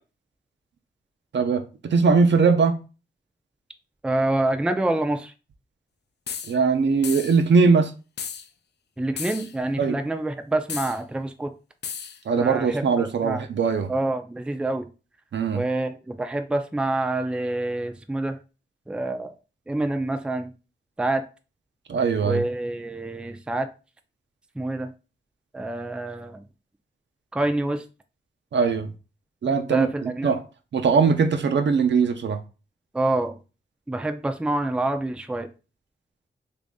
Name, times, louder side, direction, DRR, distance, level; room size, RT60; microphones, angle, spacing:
voice 1, 1.3-2.8 6.5-7.9 9.8-10.0 12.3-13.9 15.3-15.6 21.9-22.4 28.5-28.9 29.4-30.4 30.7-32.4, right 5 dB, 70° right, 0.6 m, -21 dB
voice 2, 4.0-5.3 9.0-11.5 12.4-13.4 13.9-14.9 15.5-18.4 18.9-19.3 19.7-20.5 21.0-21.3 22.2-23.7 24.6-24.9 25.5-26.4 27.3-27.8 29.7-30.3 32.9-33.3 33.9-35.5, right 2 dB, 5° right, 0.4 m, -27 dB
sound 1, 6.3-6.5 7.0-7.4 8.2-8.5 9.2-9.5 10.7-11.0 11.8-12.2, left 7 dB, 60° left, 0.4 m, -34 dB
3.0 x 2.6 x 3.5 m
cardioid pair, 55°, 20 cm